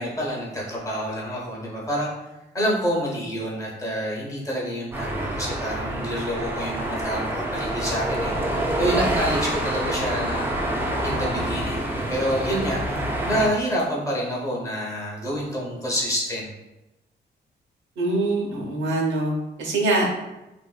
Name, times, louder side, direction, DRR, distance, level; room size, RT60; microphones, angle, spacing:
voice 1, 0.0-2.1 2.5-10.5 11.0-16.5, equal, 20° left, -3 dB, 0.7 m, -28 dB
sound 1, 4.9-13.5, right 1 dB, 10° right, 0.3 m, -27 dB
voice 2, 18.0-20.1, right 2 dB, 90° right, -1 dB, 0.8 m, -24 dB
3.5 x 2.5 x 2.3 m, 0.97 s
wide cardioid pair, 155°, 19 cm